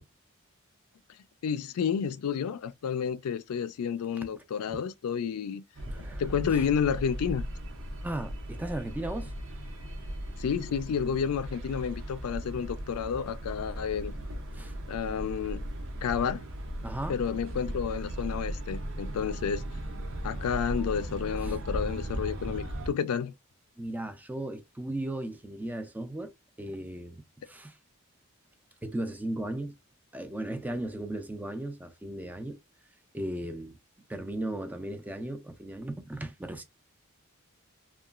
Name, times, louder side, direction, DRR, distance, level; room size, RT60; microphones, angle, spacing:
voice 1, 1.4-5.6 6.2-7.5 10.4-14.1 14.9-15.6 16.0-16.4 17.1-19.6 20.2-23.3, left 7 dB, 80° left, 0.3 m, -30 dB
sound 1, 5.7-22.9, right 1 dB, 60° right, 0.6 m, -37 dB
voice 2, 5.9-6.2 6.5-6.6 8.0-9.3 13.7-13.8 14.5-14.7 16.8-17.2 21.4-21.6 23.8-26.3 26.6-27.8 28.8-29.7 30.1-32.6 33.1-33.8 34.1-36.6, right 1 dB, 5° right, 0.3 m, -36 dB
2.8 x 2.3 x 2.3 m
head